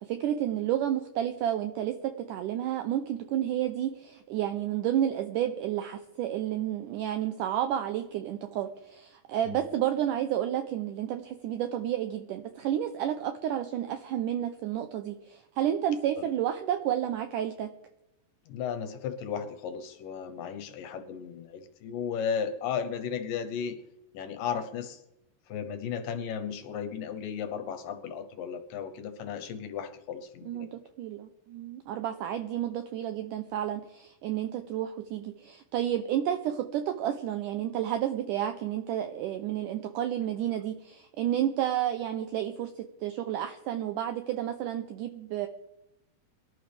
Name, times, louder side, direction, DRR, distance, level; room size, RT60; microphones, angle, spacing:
voice 1, 0.0-17.7 30.5-45.5, right 11 dB, 85° right, 8 dB, 1.8 m, -31 dB
voice 2, 18.5-23.8 24.1-25.0 25.5-30.7, left 7 dB, 70° left, 8 dB, 2.3 m, -35 dB
23.5 x 11.5 x 3.4 m, 0.91 s
omnidirectional pair, 4.5 m